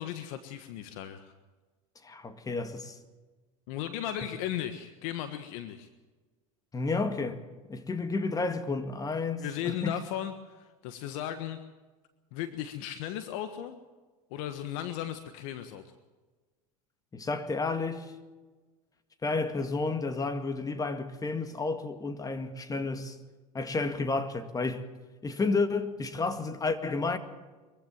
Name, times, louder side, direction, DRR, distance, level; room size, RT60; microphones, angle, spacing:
voice 1, 0.0-1.3 3.7-5.9 9.4-11.6 12.3-13.8 14.3-15.8, left 11 dB, 70° left, 1.5 m, -36 dB
voice 2, 2.0-3.0 6.7-7.4 7.7-10.0 17.1-18.1 19.2-23.2 23.5-24.9 25.2-27.2, left 3 dB, 20° left, 2.1 m, -31 dB
23.0 x 15.5 x 7.5 m
supercardioid pair, 105°, 18 cm